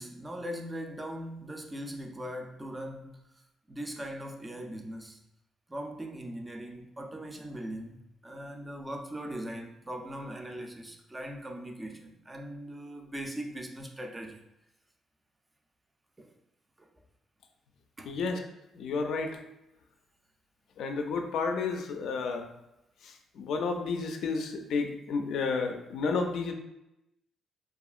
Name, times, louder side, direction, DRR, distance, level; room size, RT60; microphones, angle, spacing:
voice 1, 0.0-3.3 3.7-5.2 5.7-14.4 16.2-16.3 16.8-16.9 18.0-18.1, equal, 15° right, 3 dB, 0.4 m, -40 dB
voice 2, 18.1-18.4 18.7-19.4 20.8-22.5 23.0-26.5, left 4 dB, 75° left, 4 dB, 0.4 m, -31 dB
2.7 x 2.3 x 2.4 m, 0.90 s
cardioid pair, 90°, 0 cm